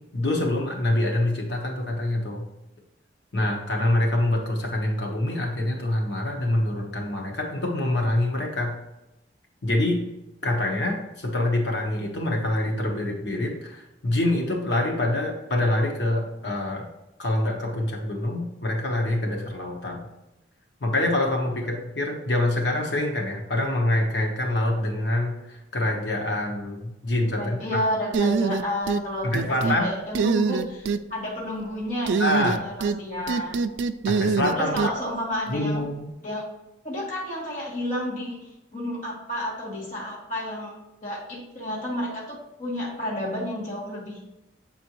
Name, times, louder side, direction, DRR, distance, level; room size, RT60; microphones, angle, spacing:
voice 1, 0.1-2.4 3.3-8.7 9.6-10.0 10.4-16.9 17.2-20.0 20.8-27.8 29.2-29.9 32.2-32.6 34.1-34.9 35.5-36.1, left 1 dB, 70° left, 0 dB, 1.1 m, -25 dB
voice 2, 27.3-33.6 34.5-35.9 36.2-36.4 36.8-40.7 41.0-44.2, equal, 45° left, -5 dB, 1.6 m, -31 dB
sound 1, 28.1-29.0 29.3-29.8 30.1-31.0 32.1-33.0 33.3-34.9, right 5 dB, 80° right, 0.3 m, -24 dB
7.4 x 4.3 x 3.0 m, 0.95 s
head